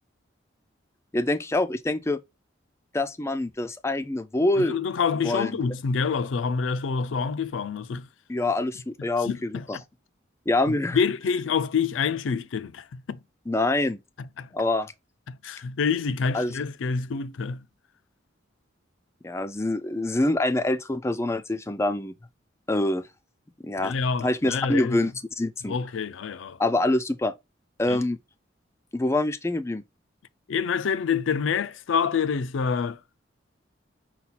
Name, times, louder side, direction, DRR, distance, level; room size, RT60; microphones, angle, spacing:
voice 1, 1.1-2.2 2.9-4.8 5.2-5.6 8.3-9.8 10.5-11.0 13.5-14.0 14.5-14.9 16.3-16.6 19.2-22.1 22.7-23.1 23.6-23.9 24.2-25.7 26.6-27.3 27.8-28.2 28.9-29.8, left 2 dB, 15° left, 0.4 m, -25 dB
voice 2, 4.6-8.1 9.2-9.8 10.7-13.2 14.4-14.5 15.3-17.6 23.8-25.1 25.7-26.6 27.9-28.0 30.5-33.0, left 6 dB, 85° left, 0.4 m, -27 dB
5.5 x 2.3 x 4.0 m
head